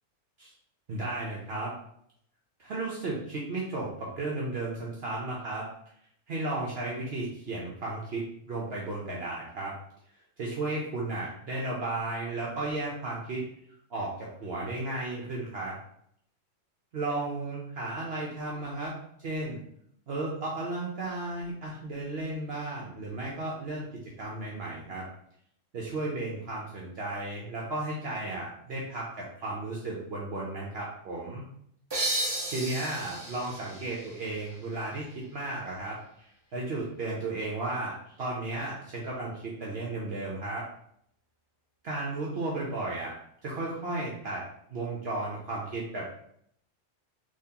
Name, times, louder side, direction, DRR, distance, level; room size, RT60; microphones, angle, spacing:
voice 1, 0.9-1.7 2.6-5.6 6.3-9.7 10.4-13.4 13.9-15.8 16.9-19.0 19.2-19.6 20.1-23.9 24.2-25.1 25.7-31.4 32.5-40.6 41.8-43.1 43.4-44.4 44.7-46.1, right 2 dB, 60° right, -4 dB, 0.9 m, -34 dB
sound 1, 31.9-35.3, right 1 dB, 30° right, 0.5 m, -34 dB
3.6 x 3.1 x 2.8 m, 0.68 s
omnidirectional pair, 1.3 m